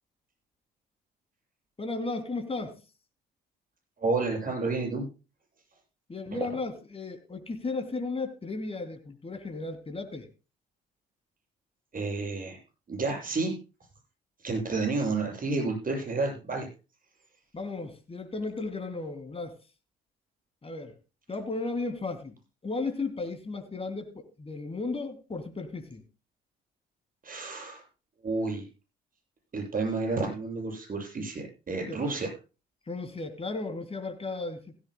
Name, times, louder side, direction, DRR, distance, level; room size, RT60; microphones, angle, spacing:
voice 1, 1.8-2.8 6.1-10.3 17.5-19.6 20.6-21.0 21.3-22.4 22.6-26.1 31.9-32.0 32.9-34.7, left 3 dB, 25° left, 3.0 m, -35 dB
voice 2, 4.0-5.1 11.9-12.6 12.9-13.5 14.4-16.7 27.2-27.8 28.2-28.6 29.5-32.3, right 3 dB, 40° right, 7.6 m, -30 dB
16.5 x 15.0 x 2.2 m
hypercardioid pair, 55°, 21 cm